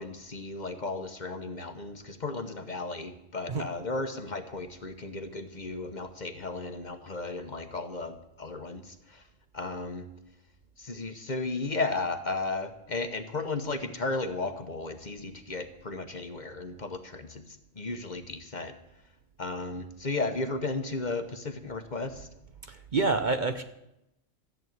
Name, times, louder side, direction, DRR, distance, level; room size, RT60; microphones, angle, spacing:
voice 1, 0.0-9.2 9.5-10.1 10.8-17.4 17.8-18.7 19.4-22.3, left 3 dB, 40° left, 8 dB, 1.1 m, -34 dB
voice 2, 22.7-23.6, right 3 dB, 45° right, 8 dB, 0.8 m, -27 dB
14.0 x 8.1 x 9.3 m, 0.87 s
omnidirectional pair, 1.3 m